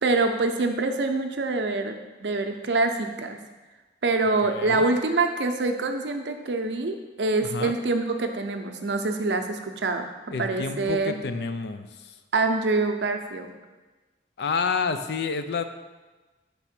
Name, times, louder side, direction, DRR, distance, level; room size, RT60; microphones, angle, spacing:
voice 1, 0.0-3.4 4.0-10.1 10.4-11.1 12.3-13.5, right 3 dB, 80° right, 5 dB, 0.6 m, -25 dB
voice 2, 4.4-4.9 7.4-7.7 10.3-11.9 14.4-15.6, left 5 dB, 65° left, 9 dB, 0.4 m, -29 dB
5.4 x 3.6 x 5.8 m, 1.2 s
head